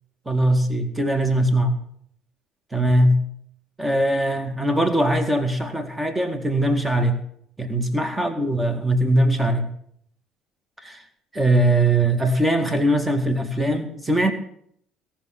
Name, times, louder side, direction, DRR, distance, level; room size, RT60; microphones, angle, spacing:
voice 1, 0.3-1.8 2.7-3.2 3.8-7.2 7.6-9.7 10.8-11.0 11.3-14.3, right 1 dB, 15° right, 7 dB, 2.1 m, -21 dB
17.5 x 6.0 x 8.7 m, 0.67 s
figure-of-eight pair, 55°, 0 cm